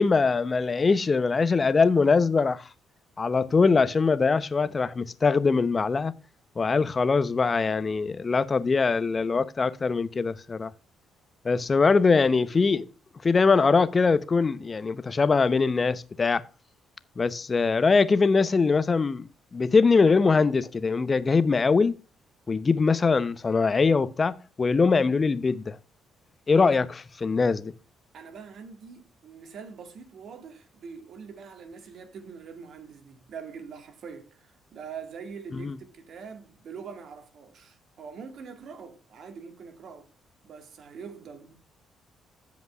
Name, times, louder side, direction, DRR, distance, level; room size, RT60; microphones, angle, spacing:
voice 1, 0.0-2.6 3.2-6.1 6.6-10.7 11.4-12.8 13.2-16.4 17.2-21.9 22.5-24.3 24.6-25.8 26.5-26.9 27.2-27.7 35.5-35.7, left 4 dB, 35° left, 0.8 m, -22 dB
voice 2, 28.1-40.1 40.4-41.5, right 6 dB, 65° right, 1.8 m, -43 dB
15.5 x 5.3 x 2.3 m
supercardioid pair, 55°, 0 cm